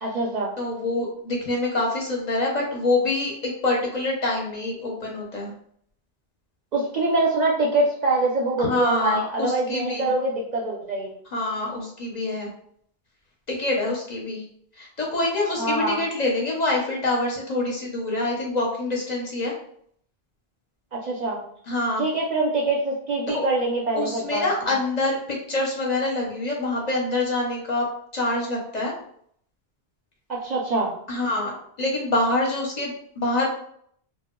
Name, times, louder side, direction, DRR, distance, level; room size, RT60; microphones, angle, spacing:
voice 1, 0.0-0.5 6.7-11.1 15.6-16.0 20.9-21.4 22.0-24.7 30.3-30.9, right 2 dB, 55° right, -2 dB, 0.5 m, -24 dB
voice 2, 0.6-5.5 8.6-10.1 11.3-12.5 13.5-14.4 14.8-19.5 21.7-22.0 23.3-23.4 24.0-27.9 28.1-28.9 31.1-33.5, left 2 dB, 50° left, -2 dB, 0.6 m, -26 dB
2.1 x 2.0 x 3.5 m, 0.65 s
omnidirectional pair, 1.0 m